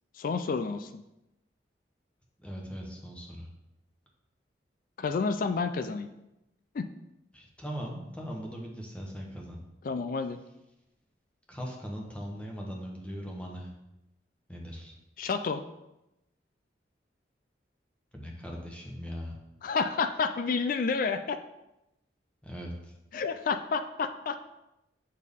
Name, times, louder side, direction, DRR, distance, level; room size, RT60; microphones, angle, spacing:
voice 1, 0.1-1.0 5.0-6.1 6.7-6.9 9.8-10.4 15.2-15.6 19.6-21.4 23.1-24.4, left 4 dB, 50° left, 9 dB, 0.4 m, -30 dB
voice 2, 2.4-3.5 7.3-9.7 11.5-13.7 14.5-15.0 18.1-19.4 22.4-22.9, equal, 5° left, -1 dB, 1.1 m, -39 dB
8.2 x 4.3 x 3.6 m, 0.90 s
head